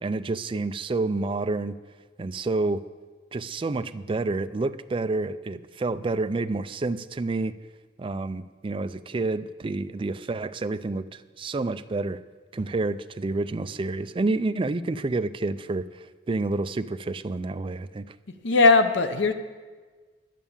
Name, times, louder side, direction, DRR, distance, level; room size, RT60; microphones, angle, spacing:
voice 1, 0.0-1.7 2.2-2.9 3.3-7.6 8.0-12.2 12.5-18.1, right 3 dB, 30° right, 11 dB, 0.4 m, -29 dB
voice 2, 18.4-19.3, left 3 dB, 75° left, 8 dB, 0.8 m, -18 dB
11.0 x 9.2 x 7.1 m, 1.4 s
head